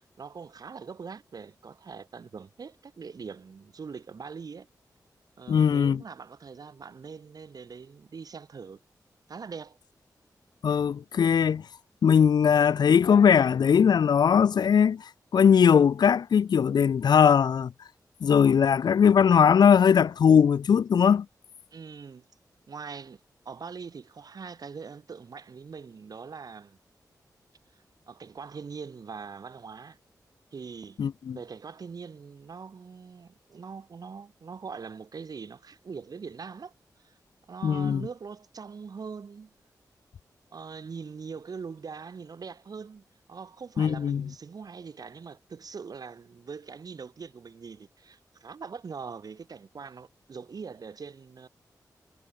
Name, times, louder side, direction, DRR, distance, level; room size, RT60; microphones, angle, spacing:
voice 1, 0.0-4.7 5.4-8.8 9.3-9.8 21.7-22.3 22.7-23.2 23.4-26.8 28.1-30.0 30.5-31.0 31.3-36.7 37.0-37.1 37.5-39.5 40.5-51.5, right 5 dB, 65° right, 6.5 m, -42 dB
voice 2, 5.5-6.0 10.6-11.6 12.0-15.0 15.3-17.7 18.2-21.3 31.0-31.4 37.6-38.0 43.8-44.3, left 7 dB, 80° left, 0.8 m, -20 dB
wide cardioid pair, 95°, 7 cm